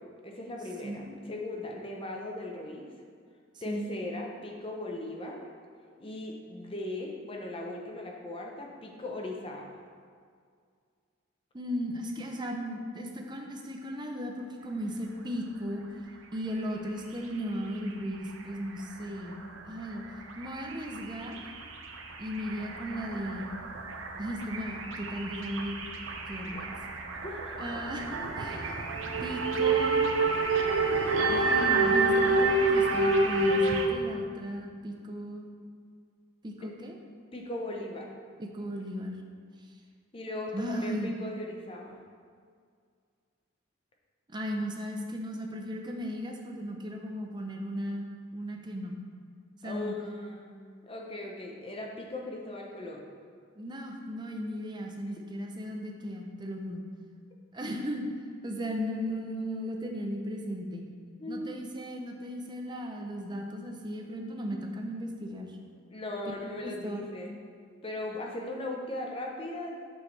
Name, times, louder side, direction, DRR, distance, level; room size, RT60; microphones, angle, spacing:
voice 1, 0.0-2.8 3.6-5.5 6.0-9.7 27.2-27.5 36.6-36.7 37.3-38.1 40.1-42.0 49.6-50.6 50.8-53.0 61.2-61.7 65.9-67.3 67.8-69.8, left 2 dB, 25° left, 0 dB, 0.8 m, -38 dB
voice 2, 0.8-1.2 3.6-3.9 11.5-15.8 16.3-20.0 20.4-21.4 22.2-23.5 24.2-25.8 26.1-26.8 27.6-28.9 29.2-30.1 31.3-35.5 36.4-37.0 38.4-39.2 39.6-39.7 40.5-41.1 44.3-49.0 49.6-49.9 53.6-56.8 57.5-58.0 58.4-60.9 61.3-65.6 66.6-67.1, equal, 20° right, 2 dB, 0.7 m, -36 dB
sound 1, 18.8-18.9 19.3-19.5 19.8-20.0 20.3-33.9, right 3 dB, 80° right, 0.7 m, -28 dB
7.4 x 6.3 x 3.3 m, 2.1 s
head